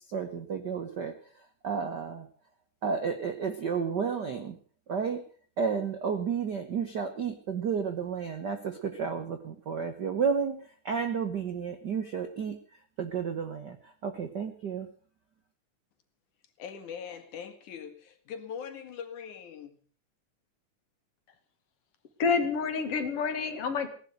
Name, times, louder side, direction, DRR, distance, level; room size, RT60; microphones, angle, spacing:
voice 1, 0.1-2.3 2.8-4.6 4.9-5.3 5.6-12.6 13.0-14.9, right 6 dB, 60° right, 8 dB, 1.1 m, -32 dB
voice 2, 16.6-19.8, left 7 dB, 75° left, 8 dB, 3.2 m, -41 dB
voice 3, 22.2-23.9, left 5 dB, 50° left, 8 dB, 2.5 m, -28 dB
17.5 x 11.5 x 6.6 m, 0.43 s
omnidirectional pair, 3.5 m